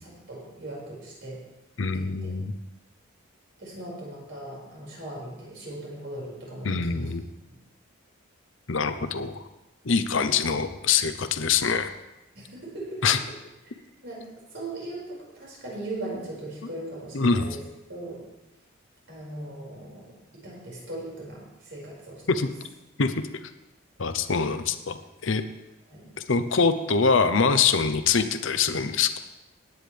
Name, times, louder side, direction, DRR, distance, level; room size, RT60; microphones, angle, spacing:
voice 1, 0.0-1.4 1.9-2.3 3.6-7.1 9.0-9.1 10.2-10.3 12.3-13.0 14.0-14.2 14.5-17.6 17.9-18.2 19.1-20.1 20.3-22.2 24.3-24.5 25.9-26.1, right 1 dB, 55° right, -4 dB, 5.4 m, -39 dB
voice 2, 1.8-2.5 6.6-7.2 8.7-9.4 9.8-11.9 13.0-13.2 17.1-17.6 22.3-22.5 23.0-23.3 24.0-25.4 26.3-29.1, left 5 dB, 60° left, 10 dB, 0.8 m, -24 dB
18.5 x 9.7 x 3.4 m, 0.98 s
head